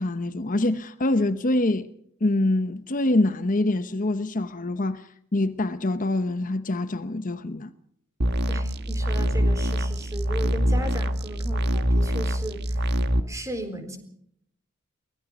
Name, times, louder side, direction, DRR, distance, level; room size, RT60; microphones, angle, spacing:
voice 1, 0.0-1.9 2.2-7.7, left 2 dB, 40° left, 0.9 m, -25 dB
sound 1, 8.2-13.2, equal, 50° right, 1.5 m, -24 dB
voice 2, 8.5-13.0 13.3-14.0, right 1 dB, 15° right, 3.9 m, -36 dB
23.5 x 19.5 x 6.1 m
head